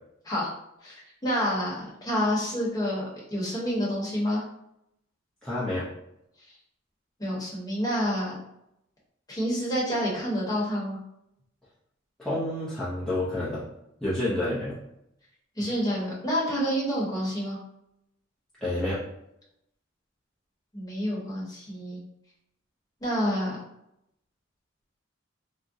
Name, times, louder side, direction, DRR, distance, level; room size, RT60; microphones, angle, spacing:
voice 1, 0.8-4.4 7.2-8.4 9.3-11.0 15.6-17.6 20.7-22.0 23.0-23.6, equal, 20° left, -5 dB, 1.0 m, -28 dB
voice 2, 5.4-5.9 12.2-13.7 14.0-14.8 18.6-19.0, left 1 dB, 5° left, -10 dB, 0.5 m, -29 dB
3.5 x 2.0 x 2.6 m, 0.81 s
head